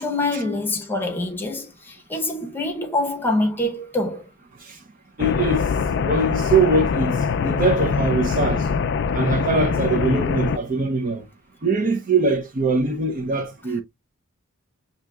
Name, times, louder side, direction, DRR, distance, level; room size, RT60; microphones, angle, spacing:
voice 1, 0.0-4.2, left 2 dB, 10° left, 0.8 m, -25 dB
sound 1, 5.2-10.6, left 5 dB, 50° left, 0.3 m, -23 dB
voice 2, 5.2-5.7 6.0-7.2 7.4-8.7 9.1-11.2 11.6-13.8, right 3 dB, 40° right, 0.5 m, -22 dB
6.3 x 2.7 x 2.3 m
head